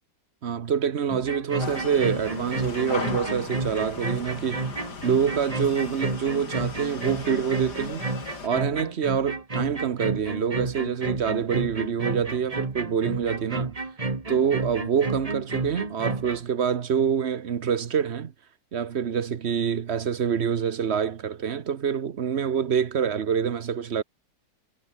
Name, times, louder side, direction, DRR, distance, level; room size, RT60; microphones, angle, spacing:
voice 1, 0.4-8.1 8.4-13.8 14.3-18.3 18.7-24.0, right 7 dB, 45° right, 1.0 m, -26 dB
sound 1, 1.1-16.4, right 3 dB, 20° right, 1.6 m, -31 dB
sound 2, 1.6-8.5, left 5 dB, 65° left, 3.1 m, -38 dB
omnidirectional pair, 2.0 m